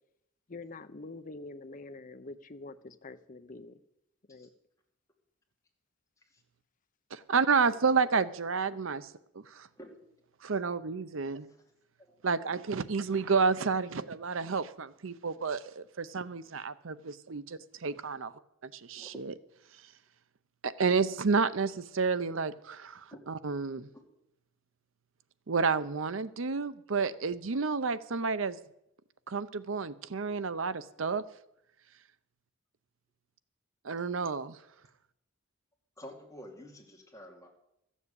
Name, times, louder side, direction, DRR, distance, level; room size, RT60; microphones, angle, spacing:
voice 1, 0.5-3.8 4.3-4.5, left 3 dB, 40° left, 11 dB, 0.7 m, -45 dB
voice 2, 7.1-9.1 9.3-9.7 10.4-11.5 12.2-18.3 18.6-19.3 20.6-23.9 25.5-28.6 29.3-31.2 33.8-34.6, right 5 dB, 70° right, 14 dB, 0.7 m, -30 dB
voice 3, 11.2-11.6 12.1-12.2 18.9-19.2 23.1-23.2 36.0-37.5, equal, 15° left, -1 dB, 2.7 m, -49 dB
14.0 x 7.3 x 8.4 m, 0.81 s
head